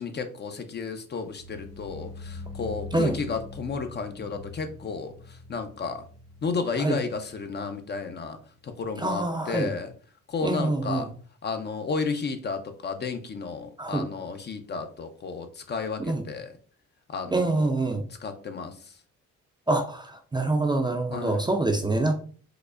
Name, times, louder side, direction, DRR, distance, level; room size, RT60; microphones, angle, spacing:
voice 1, 0.0-6.1 6.4-8.4 8.6-9.9 10.3-11.1 11.4-16.5 17.1-17.7 18.2-19.0 21.1-21.5, left 4 dB, 35° left, 0.5 m, -32 dB
sound 1, 1.1-8.2 8.5-8.9 9.3-9.4, left 3 dB, 50° left, 1.2 m, -43 dB
voice 2, 9.0-9.7 10.4-11.1 13.8-14.0 16.1-16.2 17.3-18.0 19.7-22.2, right 2 dB, 15° right, 0.4 m, -25 dB
4.8 x 2.1 x 2.3 m
cardioid pair, 90°, 30 cm